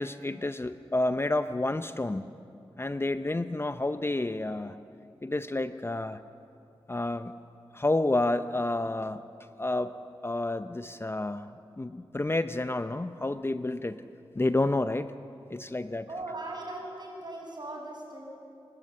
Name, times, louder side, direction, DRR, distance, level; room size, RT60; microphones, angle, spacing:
voice 1, 0.0-2.3 2.8-4.8 5.2-6.2 6.9-7.3 7.7-9.2 9.6-10.0 10.2-11.5 11.8-14.0 14.3-15.1 15.5-16.1, left 2 dB, 25° left, 11 dB, 0.7 m, -29 dB
voice 2, 16.1-18.2, right 2 dB, 45° right, -1 dB, 7.1 m, -39 dB
26.5 x 13.0 x 8.5 m, 2.6 s
cardioid pair, 55°, 10 cm